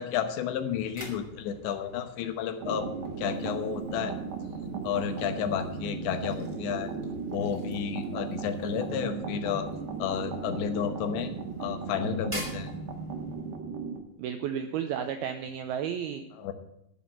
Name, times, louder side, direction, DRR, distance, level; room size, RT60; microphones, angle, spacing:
voice 1, 0.0-2.9 3.2-4.2 4.8-6.9 7.3-9.7 10.0-11.3 11.6-12.7 16.4-16.5, left 8 dB, 80° left, 8 dB, 3.3 m, -31 dB
sound 1, 0.6-13.6, right 1 dB, 25° right, 0.6 m, -48 dB
sound 2, 2.6-14.0, right 5 dB, 65° right, 2.3 m, -36 dB
voice 2, 14.2-16.2, right 8 dB, 90° right, 7 dB, 2.2 m, -32 dB
12.5 x 6.5 x 7.7 m, 0.80 s
omnidirectional pair, 5.2 m